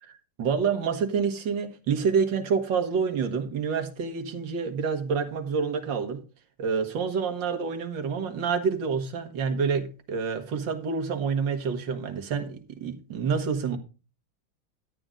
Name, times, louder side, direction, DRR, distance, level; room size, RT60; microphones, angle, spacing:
voice 1, 0.4-6.2 6.6-13.8, right 6 dB, 60° right, 2.1 m, -28 dB
12.5 x 8.7 x 3.8 m
omnidirectional pair, 2.3 m